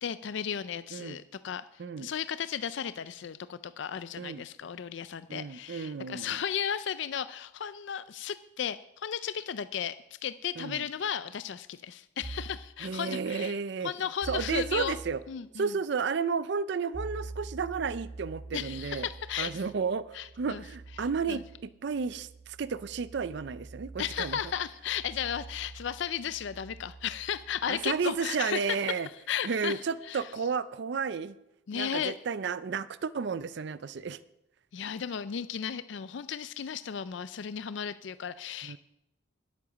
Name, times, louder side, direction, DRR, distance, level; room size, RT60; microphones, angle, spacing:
voice 1, 0.0-10.0 10.2-13.6 13.8-15.0 15.3-15.7 18.5-19.6 20.1-20.6 21.3-21.4 24.0-30.3 31.7-32.1 34.7-38.8, left 8 dB, 60° left, 14 dB, 0.4 m, -35 dB
voice 2, 5.3-6.4 10.6-10.8 12.8-13.9 14.3-15.2 15.5-19.1 19.4-20.0 20.4-24.4 27.7-29.1 29.4-31.3 31.7-34.2 38.6-38.8, right 5 dB, 55° right, 16 dB, 0.4 m, -32 dB
sound 1, 12.2-12.7 14.2-15.2 16.9-28.3, right 3 dB, 30° right, 2.0 m, -45 dB
11.5 x 8.6 x 6.2 m, 0.85 s
head